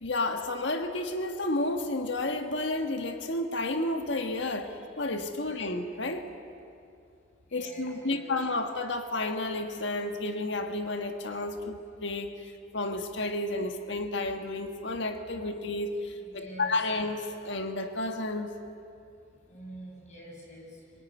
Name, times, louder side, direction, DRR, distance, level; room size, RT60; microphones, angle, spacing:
voice 1, 0.0-6.3 7.5-18.5, left 2 dB, 65° left, 6 dB, 1.6 m, -31 dB
voice 2, 7.5-8.4 16.2-16.8 19.5-21.0, equal, 40° left, -1 dB, 6.7 m, -45 dB
25.0 x 21.0 x 9.5 m, 2.5 s
head